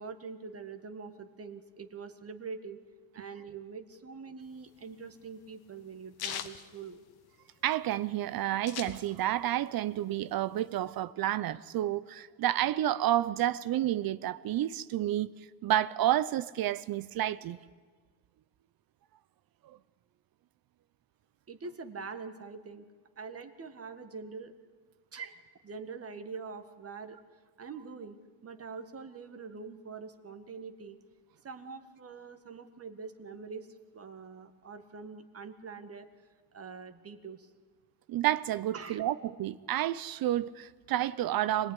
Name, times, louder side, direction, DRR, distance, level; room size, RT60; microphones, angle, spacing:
voice 1, 0.0-2.8 3.1-7.0 21.5-22.9 23.2-24.5 25.1-25.4 25.6-27.2 27.6-31.0 31.4-33.7 33.9-36.1 36.5-37.5 38.7-39.0, right 5 dB, 30° right, 1.9 m, -44 dB
sound 1, 4.5-7.6 7.9-9.5 9.9-11.0, left 9 dB, 50° left, 1.6 m, -41 dB
voice 2, 7.6-15.3 15.6-17.6 19.6-19.8 38.1-41.7, right 13 dB, 50° right, 0.7 m, -30 dB
26.0 x 18.5 x 10.0 m
cardioid pair, 110°, 46 cm